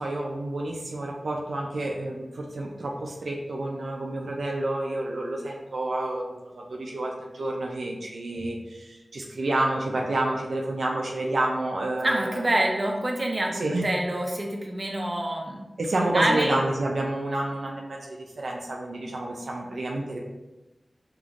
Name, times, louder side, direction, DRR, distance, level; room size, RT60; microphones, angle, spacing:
voice 1, 0.0-12.5 13.5-13.9 15.8-20.2, right 2 dB, 85° right, -1 dB, 0.5 m, -29 dB
voice 2, 12.0-15.7 16.1-16.6, right 1 dB, 40° right, 0 dB, 0.7 m, -26 dB
4.9 x 3.0 x 2.5 m, 1.1 s
cardioid pair, 50°, 0 cm